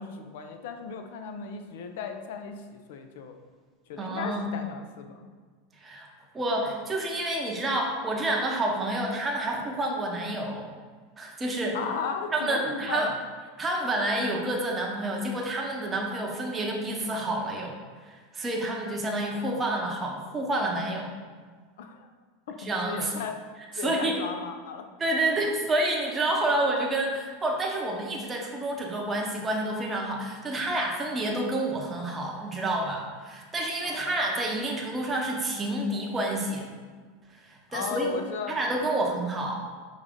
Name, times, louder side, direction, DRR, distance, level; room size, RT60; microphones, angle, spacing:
voice 1, 0.0-3.4 3.9-5.3 11.7-13.1 21.8-22.1 22.5-23.4 23.7-24.9 33.8-34.1 37.7-38.6, left 6 dB, 75° left, 6 dB, 0.4 m, -36 dB
voice 2, 4.0-4.5 5.8-6.1 6.3-10.7 11.2-11.8 12.3-13.1 13.6-17.8 18.0-21.1 22.6-23.1 23.7-24.2 25.0-36.7 37.3-38.1 38.5-39.6, right 1 dB, 15° right, -1 dB, 0.7 m, -29 dB
4.8 x 2.6 x 3.5 m, 1.5 s
supercardioid pair, 140°, 0 cm